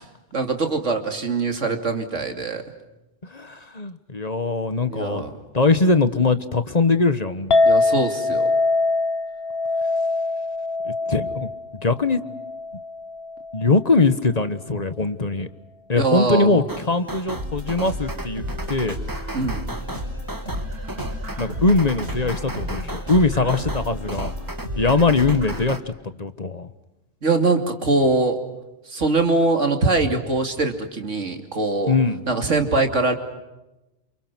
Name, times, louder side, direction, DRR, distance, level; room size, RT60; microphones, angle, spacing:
voice 1, 0.3-2.6 4.9-5.3 7.6-8.5 15.9-16.6 19.3-19.7 27.2-28.4 28.9-32.0 32.3-33.1, right 3 dB, 90° right, 5 dB, 3.0 m, -22 dB
voice 2, 3.3-5.2 5.5-7.6 10.8-11.5 11.8-12.2 13.5-15.5 15.9-19.0 21.4-24.3 24.8-25.9 26.2-26.7 31.9-32.2, left 3 dB, 35° left, 11 dB, 1.3 m, -21 dB
Chink clink, 7.5-13.8, left 3 dB, 60° left, 1.3 m, -23 dB
sound 1, 16.7-25.8, right 1 dB, 15° right, 1.7 m, -35 dB
sound 2, 17.3-25.7, equal, 70° right, 8.5 m, -32 dB
29.0 x 28.0 x 6.1 m, 0.99 s
omnidirectional pair, 1.2 m